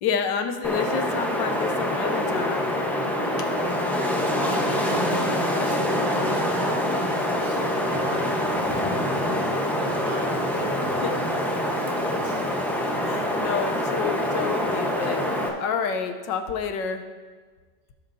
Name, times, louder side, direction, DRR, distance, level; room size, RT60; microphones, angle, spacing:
voice 1, 0.0-2.8 3.4-3.5 11.0-11.2 13.0-15.3 15.6-17.1, left 6 dB, 85° left, 7 dB, 1.5 m, -29 dB
Wind, 0.6-15.5, left 1 dB, ahead, 0.6 m, -25 dB
voice 2, 4.4-8.9 9.3-12.4, right 3 dB, 85° right, 1 dB, 2.0 m, -39 dB
18.0 x 7.4 x 2.7 m, 1.5 s
omnidirectional pair, 1.9 m